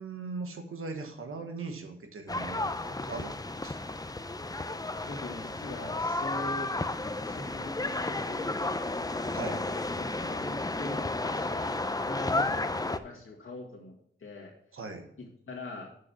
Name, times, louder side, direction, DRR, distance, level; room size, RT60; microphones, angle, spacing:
voice 1, 0.0-3.3 3.6-3.8 9.3-9.6 14.7-15.0, right 3 dB, 85° right, 5 dB, 1.2 m, -39 dB
sound 1, 2.3-13.0, left 2 dB, 15° left, 0.6 m, -32 dB
voice 2, 5.1-6.7 7.2-9.0 10.0-13.9 14.2-14.5 15.2-15.9, left 2 dB, 80° left, -3 dB, 2.1 m, -42 dB
6.4 x 5.6 x 6.9 m, 0.65 s
cardioid pair, 40°, 21 cm